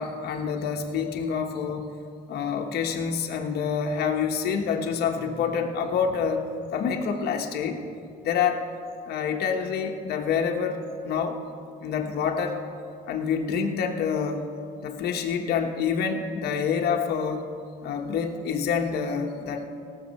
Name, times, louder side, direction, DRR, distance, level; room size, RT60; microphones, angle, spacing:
voice 1, 0.0-1.9 2.3-6.4 6.7-7.8 8.2-8.7 9.1-11.4 11.8-12.6 13.1-14.5 14.8-17.5 17.8-19.6, left 6 dB, 70° left, 3 dB, 1.2 m, -27 dB
17.5 x 6.8 x 5.5 m, 2.3 s
cardioid pair, 110°, 17 cm